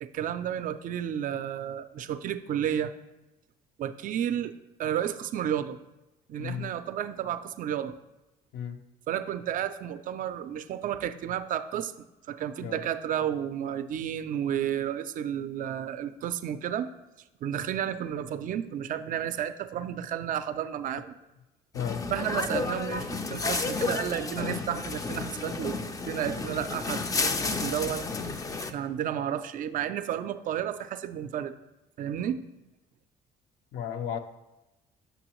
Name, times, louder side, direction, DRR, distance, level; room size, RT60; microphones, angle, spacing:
voice 1, 0.0-2.9 3.8-4.5 4.8-5.8 6.3-8.0 9.1-11.9 12.3-16.9 17.4-21.2 22.1-28.1 28.6-31.5 32.0-32.4, right 10 dB, 55° right, 11 dB, 0.4 m, -32 dB
voice 2, 6.4-6.7 8.5-8.8 12.6-12.8 21.7-22.0 33.7-34.2, left 8 dB, 75° left, 8 dB, 0.6 m, -34 dB
sound 1, 21.8-28.7, left 3 dB, 20° left, 0.4 m, -31 dB
7.0 x 6.1 x 2.9 m, 1.0 s
cardioid pair, 110°, 17 cm